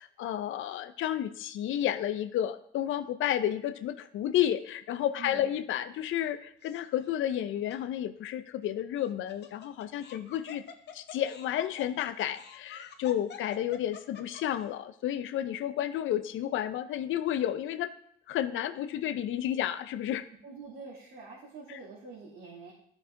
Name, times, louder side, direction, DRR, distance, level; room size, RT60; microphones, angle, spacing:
voice 1, 0.0-10.6 10.9-17.9 18.3-20.3, left 11 dB, 80° left, 12 dB, 0.6 m, -31 dB
Laughter, 6.6-7.1 7.7-7.8 9.0-14.6, left 7 dB, 60° left, 0.9 m, -48 dB
voice 2, 20.4-22.7, right 4 dB, 85° right, -8 dB, 2.9 m, -46 dB
11.0 x 6.2 x 3.8 m, 0.67 s
cardioid pair, 90°, 20 cm